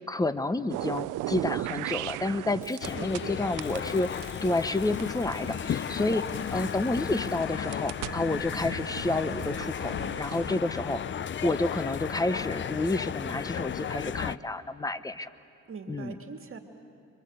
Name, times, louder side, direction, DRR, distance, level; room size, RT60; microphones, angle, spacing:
voice 1, 0.0-11.0 11.4-15.3 15.9-16.2, left 2 dB, 10° left, 12 dB, 1.0 m, -30 dB
sound 1, 0.7-3.3 3.6-6.5 7.1-10.6, right 16 dB, 90° right, 0.6 m, -37 dB
sound 2, 2.5-3.0 3.6-7.4, right 2 dB, 10° right, 4.0 m, -53 dB
sound 3, 2.8-14.4, left 8 dB, 40° left, 0.6 m, -34 dB
voice 2, 2.9-3.4 15.7-16.6, right 5 dB, 45° right, 4 dB, 2.2 m, -41 dB
30.0 x 24.0 x 8.1 m, 2.5 s
cardioid pair, 90°, 30 cm